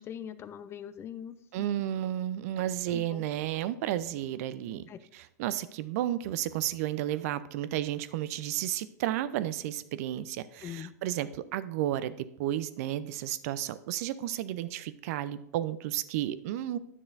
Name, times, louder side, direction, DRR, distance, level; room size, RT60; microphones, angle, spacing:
voice 1, 0.0-1.7 2.9-3.3 4.9-5.0 10.6-11.0, left 9 dB, 25° left, 14 dB, 0.4 m, -42 dB
voice 2, 1.5-16.8, right 12 dB, 55° right, 15 dB, 0.4 m, -32 dB
9.9 x 6.7 x 2.5 m, 0.76 s
hypercardioid pair, 100°, 10 cm